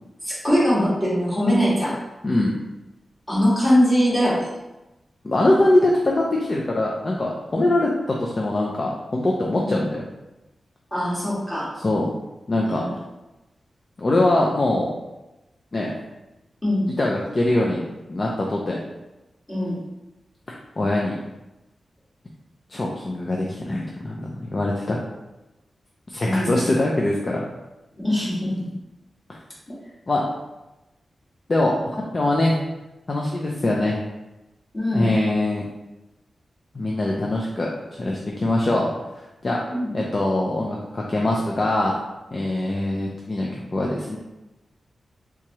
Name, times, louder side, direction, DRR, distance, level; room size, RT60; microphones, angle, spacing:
voice 1, 0.2-2.0 3.3-4.5 7.5-7.7 9.6-9.8 10.9-11.7 12.6-12.9 16.6-16.9 19.5-19.8 26.2-26.5 28.0-28.6 34.7-35.1 39.7-39.9, equal, 15° left, -9 dB, 1.5 m, -21 dB
voice 2, 5.2-6.1 6.4-10.0 11.8-12.1 12.5-12.8 14.0-14.9 15.7-15.9 17.0-17.8 18.1-18.8 20.8-21.2 22.7-25.0 26.1-27.4 30.1-30.2 31.5-31.7 32.1-32.6 33.1-34.0 34.9-35.6 36.7-38.9 39.4-39.6 39.9-41.9 42.3-44.2, left 1 dB, 35° left, -2 dB, 0.4 m, -22 dB
3.4 x 3.0 x 2.8 m, 1.0 s
wide cardioid pair, 150°, 0 cm